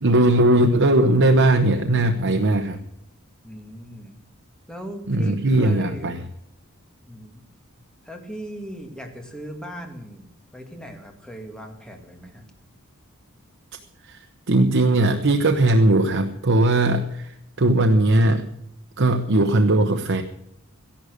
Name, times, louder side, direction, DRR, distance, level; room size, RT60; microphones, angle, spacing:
voice 1, 0.0-2.8 5.1-6.2 14.0-18.4 19.0-20.2, right 1 dB, 60° right, 6 dB, 1.0 m, -19 dB
voice 2, 3.4-4.2 4.7-6.1 7.1-7.4 8.0-10.3 10.5-12.4, equal, 5° left, 3 dB, 2.4 m, -38 dB
14.5 x 11.5 x 6.6 m, 0.78 s
head